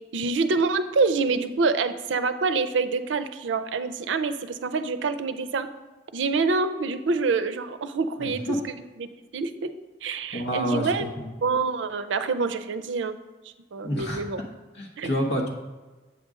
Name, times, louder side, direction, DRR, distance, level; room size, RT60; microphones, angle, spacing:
voice 1, 0.1-5.7 6.1-9.1 9.3-9.7 10.0-11.1 11.4-13.2 13.7-14.4 15.0-15.1, right 4 dB, 85° right, 11 dB, 0.5 m, -26 dB
voice 2, 8.2-8.6 10.3-10.9 11.2-11.3 13.8-14.2 14.8-15.5, equal, 70° left, 0 dB, 1.1 m, -28 dB
7.9 x 5.2 x 3.6 m, 1.3 s
head